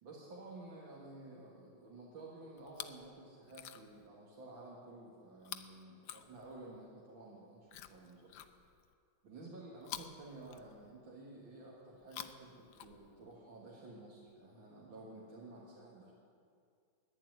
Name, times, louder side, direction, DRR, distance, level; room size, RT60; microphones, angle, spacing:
voice 1, 0.0-8.3 9.2-16.1, right 2 dB, 70° right, -5 dB, 2.4 m, -52 dB
Chewing mastication, 2.6-3.1 3.4-4.1 5.4-6.8 7.7-8.9 9.8-11.1 11.9-13.4 14.3-14.4, left 11 dB, 70° left, 1.0 m, -50 dB
11.0 x 10.0 x 9.2 m, 2.3 s
omnidirectional pair, 2.3 m